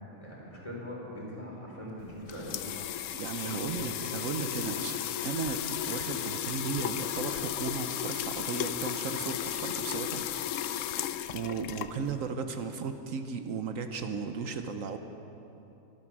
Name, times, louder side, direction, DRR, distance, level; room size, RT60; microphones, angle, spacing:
voice 1, 0.1-2.7 3.4-3.7, left 1 dB, 25° left, -4 dB, 3.9 m, -42 dB
sound 1, 2.0-12.3, left 11 dB, 70° left, 0.9 m, -34 dB
voice 2, 3.1-10.5 10.7-11.1 11.3-15.0, right 5 dB, 75° right, 7 dB, 1.2 m, -36 dB
24.0 x 9.4 x 6.2 m, 2.9 s
omnidirectional pair, 1.4 m